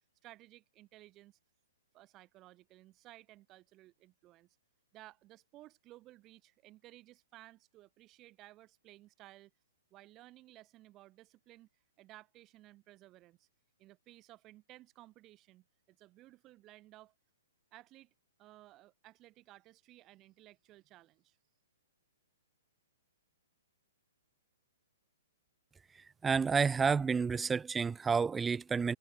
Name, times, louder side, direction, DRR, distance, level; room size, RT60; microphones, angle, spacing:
voice 1, 0.2-1.4 1.9-4.6 4.9-9.5 9.9-11.7 12.0-13.5 13.8-17.1 17.7-18.1 18.4-21.4, right 16 dB, 30° right, 2.8 m, -57 dB
voice 2, 26.2-29.0, right 5 dB, 10° right, 0.4 m, -30 dB
figure-of-eight pair, 120°, 0 cm